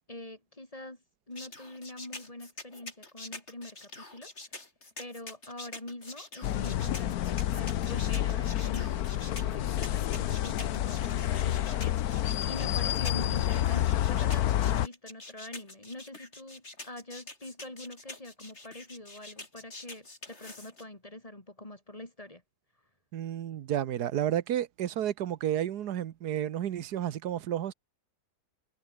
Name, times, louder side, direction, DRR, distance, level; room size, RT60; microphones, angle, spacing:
voice 1, 0.1-1.0 1.3-4.3 5.0-22.4, left 1 dB, 20° left, 3.2 m, -44 dB
sound 1, 1.4-20.8, left 2 dB, 40° left, 4.7 m, -46 dB
sound 2, 6.4-14.9, left 12 dB, 70° left, 1.2 m, -29 dB
voice 2, 23.1-27.7, right 11 dB, 80° right, 1.5 m, -31 dB
omnidirectional pair, 1.7 m